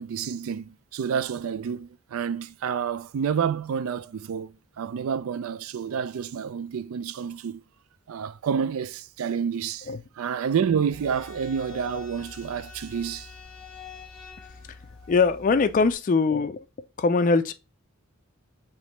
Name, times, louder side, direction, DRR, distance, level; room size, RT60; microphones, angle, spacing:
voice 1, 0.0-7.6 8.1-9.9 10.2-13.3, right 7 dB, 70° right, 0.3 m, -29 dB
sound 1, 10.9-15.9, left 5 dB, 5° left, 1.2 m, -45 dB
voice 2, 15.1-16.6 17.0-17.5, left 4 dB, 35° left, 0.3 m, -22 dB
5.1 x 3.1 x 3.0 m
head